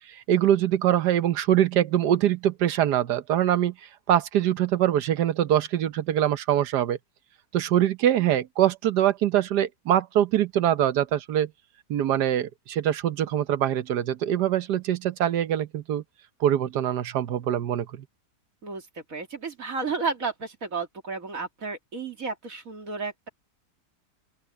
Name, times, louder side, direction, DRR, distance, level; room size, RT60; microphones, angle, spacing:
voice 1, 0.1-3.7 4.1-7.0 7.5-11.5 11.9-16.0 16.4-18.0, right 11 dB, 85° right, 1.5 m, -23 dB
voice 2, 18.6-23.3, right 4 dB, 55° right, 2.8 m, -32 dB
open air
omnidirectional pair, 1.7 m